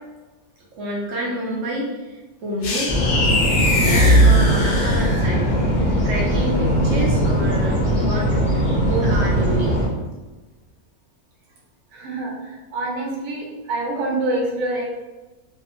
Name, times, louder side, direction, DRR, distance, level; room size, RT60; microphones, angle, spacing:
voice 1, 0.8-1.9 2.4-2.9 3.8-9.8, equal, 65° right, -5 dB, 1.0 m, -28 dB
sound 1, 2.6-5.5, equal, 75° left, 1.0 m, -19 dB
sound 2, 2.9-9.9, equal, 5° right, 1.0 m, -20 dB
voice 2, 11.9-14.8, right 2 dB, 85° right, -1 dB, 1.1 m, -26 dB
2.7 x 2.1 x 2.9 m, 1.2 s
omnidirectional pair, 1.6 m